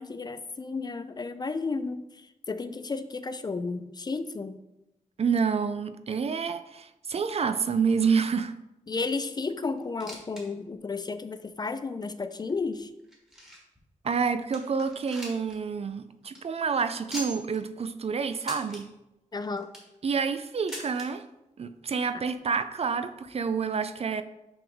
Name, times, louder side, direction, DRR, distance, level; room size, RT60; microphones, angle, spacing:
voice 1, 0.0-4.6 8.9-12.9 19.3-19.7, left 4 dB, 30° left, 11 dB, 0.3 m, -33 dB
voice 2, 5.2-8.5 14.0-18.9 20.0-21.2 21.6-24.2, right 5 dB, 50° right, 11 dB, 0.4 m, -28 dB
sound 1, 9.8-10.4 10.7-10.8 11.5-11.6 12.3-13.8 14.2-14.3 14.5-15.6 15.9-16.0 16.2-16.4 17.1-17.6 18.4-18.8 19.4-20.0 20.7-21.1 22.0-22.1 22.3-22.4 23.2-23.3, right 1 dB, 5° right, 1.6 m, -41 dB
5.9 x 5.4 x 3.5 m, 0.94 s
wide cardioid pair, 120°, 14 cm